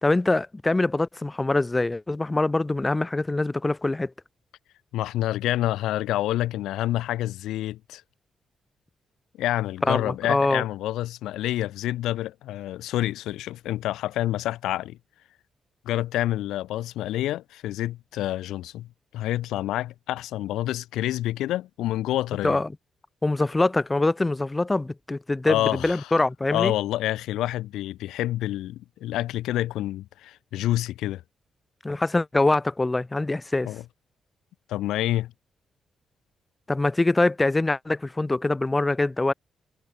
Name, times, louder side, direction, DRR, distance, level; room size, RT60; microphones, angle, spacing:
voice 1, 0.0-4.1 9.8-10.6 22.4-22.7 23.2-26.7 31.8-33.7 36.7-39.3, left 2 dB, 20° left, 0.4 m, -24 dB
voice 2, 4.9-8.0 9.4-15.0 15.9-18.9 19.1-22.6 25.5-26.1 26.5-31.2 33.6-33.8 34.7-35.3, left 14 dB, 90° left, 0.4 m, -28 dB
cardioid pair, 65°, 0 cm